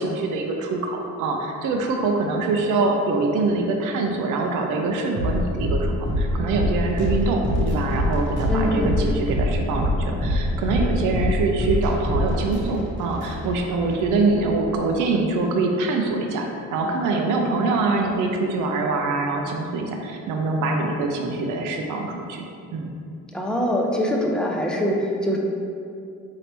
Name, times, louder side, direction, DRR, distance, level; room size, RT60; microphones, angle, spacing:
voice 1, 0.0-16.5 16.7-22.5 22.7-22.9, right 3 dB, 90° right, 2 dB, 0.5 m, -24 dB
sound 1, 5.1-14.8, equal, 40° right, 1.0 m, -25 dB
voice 2, 8.5-9.0 23.3-25.4, equal, 5° left, -2 dB, 0.5 m, -23 dB
4.2 x 2.8 x 3.3 m, 2.4 s
cardioid pair, 90°, 30 cm